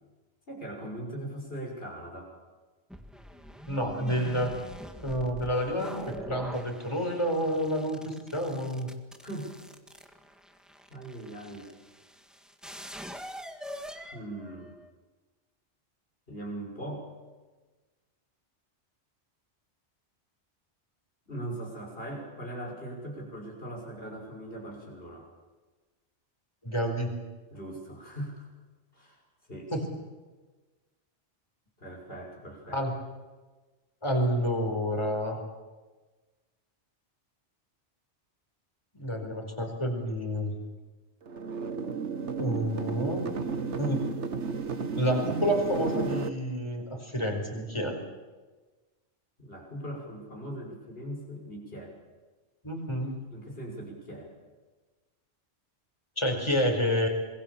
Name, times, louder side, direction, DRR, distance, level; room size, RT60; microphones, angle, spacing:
voice 1, 0.5-2.3 9.2-9.6 10.9-11.7 14.1-14.7 16.3-17.1 21.3-25.3 27.5-28.5 28.9-29.2 29.5-29.7 31.8-32.8 49.4-51.9 53.3-54.3, right 1 dB, 55° left, 0 dB, 6.8 m, -40 dB
sound 1, 2.9-14.9, equal, ahead, 1.7 m, -44 dB
voice 2, 3.7-4.5 5.0-8.9 26.6-27.1 29.7-29.8 32.7-32.9 34.0-35.4 38.9-40.5 42.4-43.3 43.8-44.0 45.0-48.0 52.6-53.2 56.2-57.1, equal, 25° left, 3 dB, 4.8 m, -29 dB
sound 2, 41.3-46.3, right 5 dB, 75° right, 1.6 m, -33 dB
27.0 x 22.0 x 7.3 m, 1.3 s
omnidirectional pair, 1.2 m